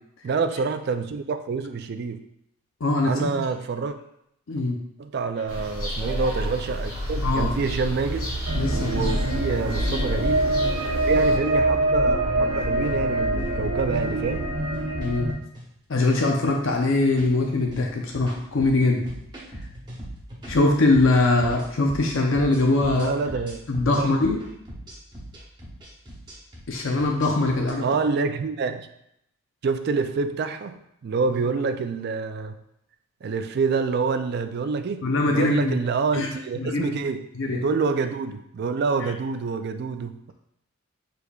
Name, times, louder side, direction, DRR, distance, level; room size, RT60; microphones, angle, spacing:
voice 1, 0.2-2.2 3.0-4.0 5.0-8.3 8.7-10.5 11.1-14.5 22.9-23.6 23.9-24.2 27.8-28.9 29.6-32.6 33.2-40.3, right 4 dB, 50° right, 9 dB, 0.3 m, -27 dB
voice 2, 2.8-3.4 4.5-4.8 7.2-7.5 8.5-9.1 9.6-9.7 15.0-15.3 15.9-19.0 20.5-23.1 23.7-24.4 26.7-27.9 35.0-35.7 36.1-36.3 36.6-37.0 37.4-37.6, left 2 dB, 70° left, 1 dB, 0.6 m, -22 dB
sound 1, 5.5-11.4, equal, 85° left, 1.8 m, -30 dB
sound 2, 8.5-15.3, right 1 dB, 85° right, 1.0 m, -24 dB
sound 3, 12.5-12.9 13.3-13.4 13.8-14.0 14.6-15.1 15.4-15.7 16.0-16.3 16.7-27.7, right 1 dB, 20° right, 0.9 m, -40 dB
6.5 x 3.3 x 2.3 m, 0.76 s
head